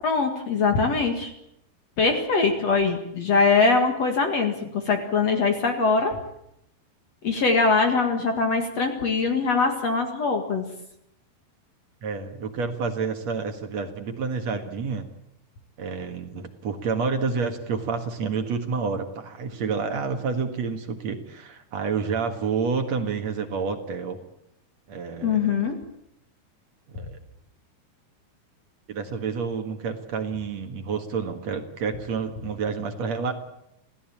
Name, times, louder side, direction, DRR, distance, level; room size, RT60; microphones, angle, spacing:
voice 1, 0.0-1.3 2.0-6.1 7.2-10.7 25.2-25.8, left 4 dB, 50° left, 5 dB, 2.5 m, -22 dB
voice 2, 12.0-15.1 15.8-24.2 24.9-25.6 26.9-27.2 28.9-33.3, right 5 dB, 55° right, 6 dB, 2.4 m, -29 dB
27.0 x 16.5 x 8.8 m, 0.80 s
omnidirectional pair, 4.6 m